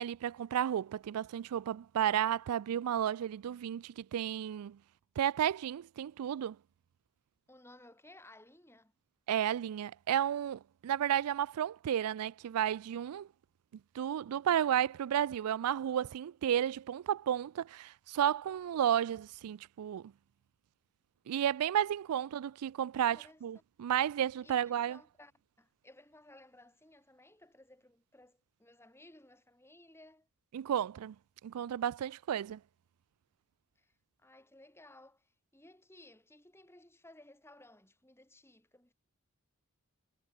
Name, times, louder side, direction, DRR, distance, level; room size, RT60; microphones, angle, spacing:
voice 1, 0.0-4.8 5.2-6.6 9.3-13.3 13.9-20.1 21.3-25.0 30.5-31.2 31.4-32.6, right 10 dB, 85° right, 0.3 m, -32 dB
voice 2, 7.5-8.9 23.1-23.4 24.4-25.3 25.6-30.3 33.7-33.9 34.2-38.9, left 1 dB, 10° left, 3.2 m, -58 dB
head